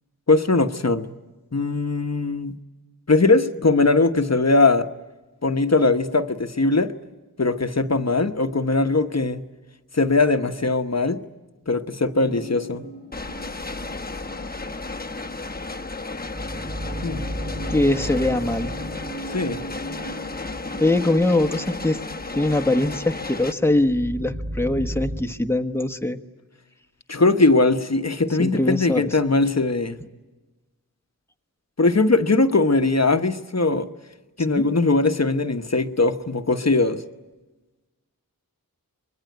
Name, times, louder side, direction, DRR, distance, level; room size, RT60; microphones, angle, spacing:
voice 1, 0.3-1.1 1.5-2.6 3.1-4.9 5.4-6.9 7.4-9.4 9.9-11.2 11.7-12.8 17.0-17.2 19.3-19.6 27.1-30.0 31.8-33.9 34.4-37.0, left 3 dB, 50° left, 1.2 m, -20 dB
sound 1, 12.2-25.2, equal, 30° right, 7.3 m, -36 dB
sound 2, 13.1-23.5, left 3 dB, 25° left, 1.1 m, -33 dB
voice 2, 17.7-18.7 20.8-22.0 22.3-26.2 28.4-29.1 34.5-34.7, left 1 dB, 5° left, 1.3 m, -22 dB
25.0 x 21.5 x 9.4 m
wide cardioid pair, 40°, 35 cm